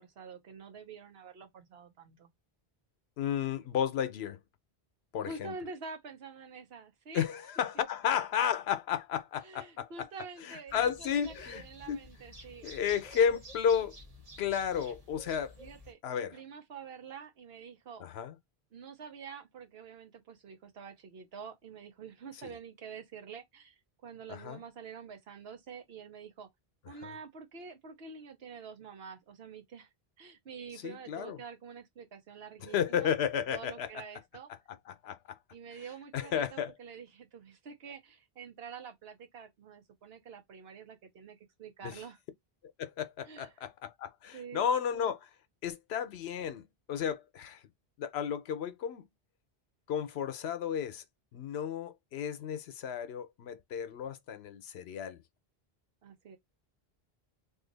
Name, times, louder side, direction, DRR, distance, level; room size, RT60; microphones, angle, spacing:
voice 1, 0.0-2.3 5.2-7.2 9.4-12.7 13.7-13.9 15.6-18.0 18.7-26.5 26.9-29.9 30.2-33.1 33.5-34.5 35.5-42.2 43.2-43.5 44.3-44.7 56.0-56.4, right 5 dB, 75° right, 1.0 m, -47 dB
voice 2, 3.2-4.4 5.1-5.5 7.1-10.1 10.4-12.0 12.6-14.0 14.4-15.5 16.0-16.4 18.0-18.4 24.3-24.6 27.0-27.1 30.8-31.4 32.6-33.9 34.9-35.4 36.1-36.7 41.8-42.0 42.8-45.3 45.6-47.6 48.0-49.1 49.9-51.0 51.3-55.2, left 8 dB, 85° left, 0.9 m, -33 dB
sound 1, 10.7-15.9, equal, 35° right, 1.0 m, -51 dB
2.6 x 2.4 x 3.9 m
omnidirectional pair, 1.0 m